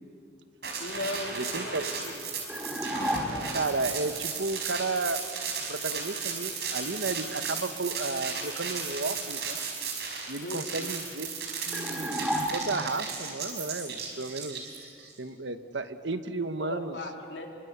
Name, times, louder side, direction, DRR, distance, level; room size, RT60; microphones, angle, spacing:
sound 1, 0.6-15.1, right 5 dB, 65° right, 5.0 m, -35 dB
voice 1, 0.8-2.2 10.4-10.7 16.6-17.5, left 2 dB, 75° left, 2 dB, 3.4 m, -37 dB
voice 2, 1.3-1.8 3.5-5.3 5.7-9.6 10.3-11.3 11.6-14.6 15.2-17.0, right 3 dB, 90° right, 10 dB, 1.3 m, -33 dB
sound 2, 2.5-3.7 11.7-13.0, equal, 5° right, 2.7 m, -32 dB
26.5 x 24.0 x 8.1 m, 2.5 s
head